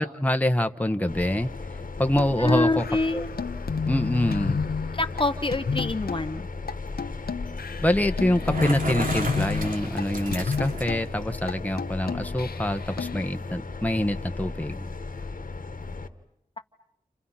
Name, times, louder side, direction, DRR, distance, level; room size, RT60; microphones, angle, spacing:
voice 1, 0.0-1.5 2.0-2.8 3.1-3.2 3.9-4.6 7.8-14.9, left 1 dB, 10° left, 7 dB, 1.3 m, -25 dB
sound 1, 1.1-16.1, left 3 dB, 65° left, 1.5 m, -36 dB
sound 2, 2.2-6.3 6.7-6.8 7.0-10.1 10.3-11.0 11.5-11.6 11.8-13.3, left 5 dB, 85° left, 0.9 m, -31 dB
voice 2, 2.4-3.3 4.9-6.5, left 2 dB, 35° left, 8 dB, 1.0 m, -26 dB
Bicycle, 8.2-11.1, right 2 dB, 65° right, 3.0 m, -34 dB
30.0 x 29.0 x 5.8 m, 0.81 s
wide cardioid pair, 55°, 15 cm